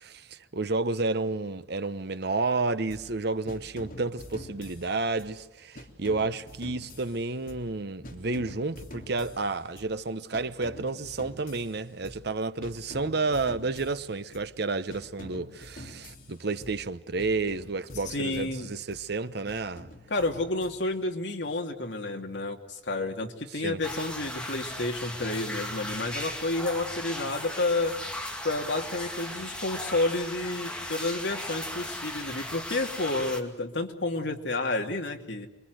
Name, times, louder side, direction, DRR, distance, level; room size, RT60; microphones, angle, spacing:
voice 1, 0.0-19.9 23.6-23.8, right 3 dB, 60° right, 1.0 m, -31 dB
sound 1, 2.9-3.2 3.5-5.4 5.7-10.0 10.3-12.3 12.6-14.6 14.9-16.9 17.2-19.1 19.5-21.1, left 1 dB, 50° left, 3.3 m, -46 dB
voice 2, 18.1-18.7 20.1-28.0 28.4-35.5, left 2 dB, 65° left, 2.6 m, -30 dB
sound 2, 23.8-33.4, left 1 dB, 5° left, 2.3 m, -37 dB
28.5 x 23.0 x 7.9 m
head